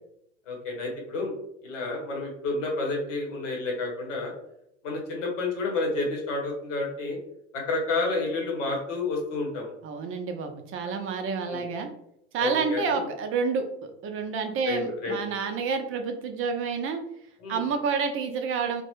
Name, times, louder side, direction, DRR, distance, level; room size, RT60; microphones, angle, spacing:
voice 1, 0.5-1.3 1.6-4.3 4.8-7.2 7.5-9.7 11.5-11.6 12.4-13.1 14.7-15.2 17.4-17.6, left 3 dB, 80° left, 0 dB, 1.0 m, -30 dB
voice 2, 9.8-11.9 12.3-17.0 17.5-18.8, right 5 dB, 35° right, 6 dB, 0.4 m, -29 dB
2.2 x 2.1 x 2.9 m, 0.76 s
hypercardioid pair, 80°, 36 cm